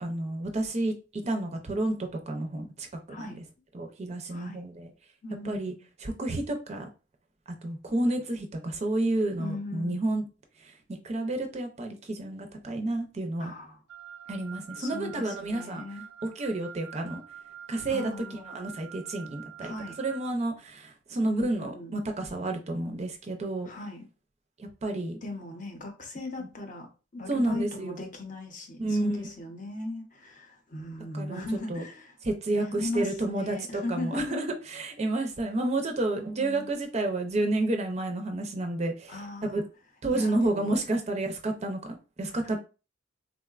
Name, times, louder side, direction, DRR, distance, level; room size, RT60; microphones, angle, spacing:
voice 1, 0.0-3.4 3.7-4.9 5.4-5.7 6.0-6.9 7.6-10.2 10.6-13.5 14.3-15.8 16.2-17.2 17.7-19.7 20.0-23.7 24.6-25.2 27.3-28.0 28.8-29.3 31.1-31.4 31.7-31.8 32.2-39.6 40.0-42.6, right 2 dB, 35° right, 0.4 m, -30 dB
voice 2, 4.3-4.6 5.2-5.8 9.4-10.1 13.4-13.8 14.8-16.0 17.9-18.5 19.6-20.0 21.2-22.0 23.6-24.1 25.2-32.1 32.5-34.4 36.1-36.7 39.1-39.6 40.1-40.8, left 2 dB, 40° left, 0.7 m, -38 dB
Wind instrument woodwind instrument, 13.9-20.3, right 9 dB, 90° right, 0.6 m, -46 dB
3.7 x 2.1 x 2.3 m
head